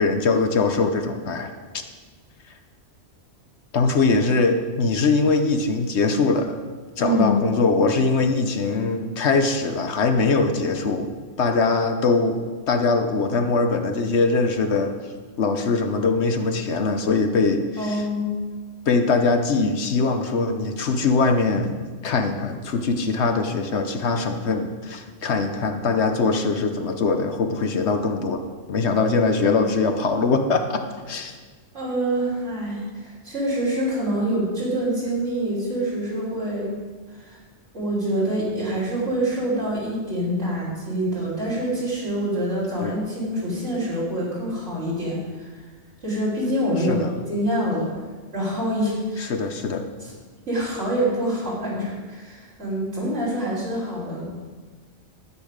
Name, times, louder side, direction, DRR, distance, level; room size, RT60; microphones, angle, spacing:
voice 1, 0.0-1.5 3.7-6.6 7.0-11.1 11.4-12.4 12.7-14.9 15.4-18.1 18.9-28.4 28.7-31.4 42.8-43.0 46.8-47.1 49.2-49.9, left 4 dB, 70° left, 6 dB, 1.2 m, -22 dB
voice 2, 7.0-7.4 17.8-18.3 31.7-36.8 37.1-37.4 37.7-45.6 46.0-47.9 48.3-49.3 50.0-50.1 50.5-54.2, right 1 dB, 90° right, -8 dB, 3.8 m, -26 dB
12.5 x 8.3 x 5.1 m, 1.4 s
omnidirectional pair, 1.2 m